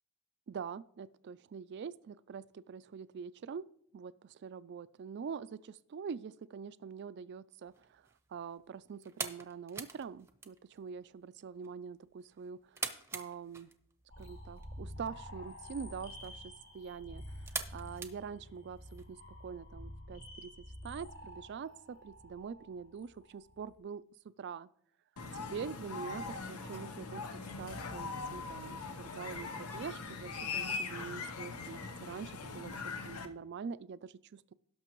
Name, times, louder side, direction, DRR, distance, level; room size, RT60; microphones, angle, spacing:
voice 1, 0.5-3.7 3.9-8.0 8.3-12.9 13.1-13.7 14.2-24.0 24.4-24.7 25.3-34.5, right 6 dB, 50° right, 17 dB, 0.3 m, -45 dB
sound 1, 7.6-19.0, right 4 dB, 10° right, 0.6 m, -47 dB
sound 2, 14.1-23.7, left 1 dB, 60° left, 3.5 m, -49 dB
sound 3, 25.2-33.3, left 4 dB, 90° left, 0.8 m, -41 dB
17.0 x 6.0 x 3.0 m, 0.69 s
head